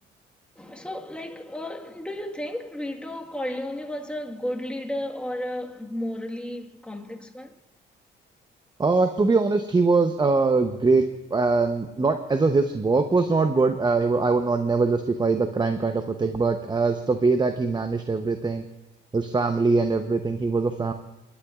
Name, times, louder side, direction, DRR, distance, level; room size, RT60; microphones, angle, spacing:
voice 1, 0.5-7.6, left 1 dB, 5° left, 1.5 m, -33 dB
voice 2, 8.8-18.6 19.1-20.9, right 3 dB, 20° right, 0.8 m, -22 dB
29.5 x 12.0 x 2.4 m
cardioid pair, 90°, 20 cm